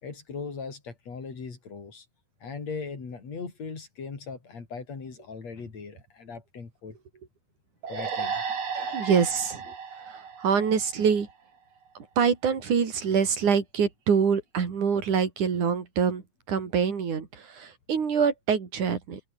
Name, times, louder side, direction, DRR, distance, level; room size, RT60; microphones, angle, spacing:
voice 1, 0.0-2.1 2.4-7.0 7.9-9.2, left 5 dB, 60° left, 5.6 m, -39 dB
sound 1, 7.8-11.3, right 6 dB, 55° right, 4.1 m, -34 dB
voice 2, 8.9-9.6 10.1-11.3 11.9-19.2, right 6 dB, 80° right, 4.8 m, -25 dB
omnidirectional pair, 3.4 m